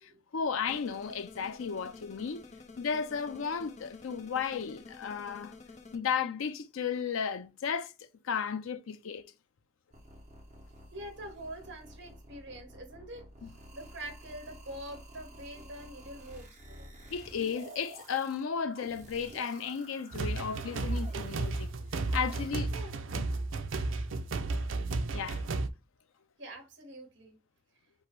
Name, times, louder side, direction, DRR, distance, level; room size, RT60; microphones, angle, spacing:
voice 1, 0.0-2.4 2.8-5.5 5.9-9.3 13.4-13.5 17.1-21.7 22.1-22.7 23.2-23.3 25.1-25.4, left 6 dB, 90° left, 0.5 m, -34 dB
sound 1, 0.7-6.0, left 3 dB, 35° left, 0.5 m, -51 dB
sound 2, 9.9-22.5, equal, 40° right, 1.3 m, -51 dB
voice 2, 10.9-17.0 22.7-23.0 26.4-27.4, right 1 dB, 60° right, 1.6 m, -45 dB
sound 3, 20.1-25.7, right 3 dB, 75° right, 0.5 m, -33 dB
5.4 x 2.0 x 4.6 m
head